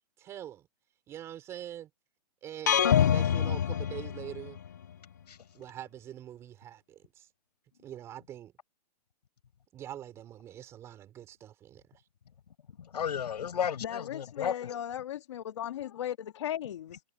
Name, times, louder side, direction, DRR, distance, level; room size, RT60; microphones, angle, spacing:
voice 1, 0.2-0.7 1.1-1.9 2.4-4.6 5.5-7.3 7.8-8.5 9.7-12.0, right 11 dB, 15° right, 5.6 m, -44 dB
sound 1, 2.7-4.7, left 9 dB, 25° left, 0.4 m, -25 dB
voice 2, 12.8-14.7, left 8 dB, 80° left, 6.1 m, -33 dB
voice 3, 13.8-17.0, left 11 dB, 45° left, 1.9 m, -37 dB
hypercardioid pair, 180°, 21 cm